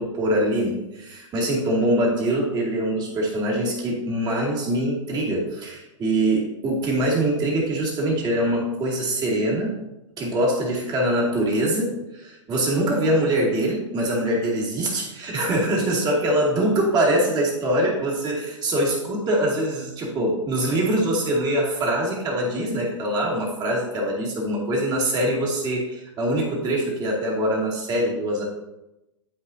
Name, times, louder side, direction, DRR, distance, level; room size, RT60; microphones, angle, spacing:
voice 1, 0.0-9.8 10.2-28.4, right 1 dB, 25° right, -2 dB, 2.4 m, -23 dB
12.0 x 5.0 x 2.8 m, 0.96 s
figure-of-eight pair, 110°, 16 cm